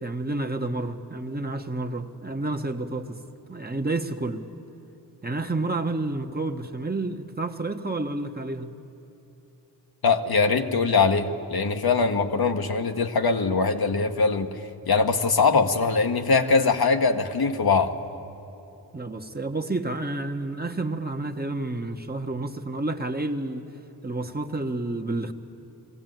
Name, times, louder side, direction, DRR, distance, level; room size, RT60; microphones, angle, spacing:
voice 1, 0.0-3.2 3.5-4.4 5.2-8.8 18.9-23.7 24.0-25.3, right 2 dB, 20° right, 4 dB, 1.1 m, -30 dB
voice 2, 10.0-14.5 14.9-17.9, left 4 dB, 60° left, 6 dB, 1.1 m, -22 dB
20.5 x 15.0 x 9.2 m, 3.0 s
cardioid pair, 45°, 41 cm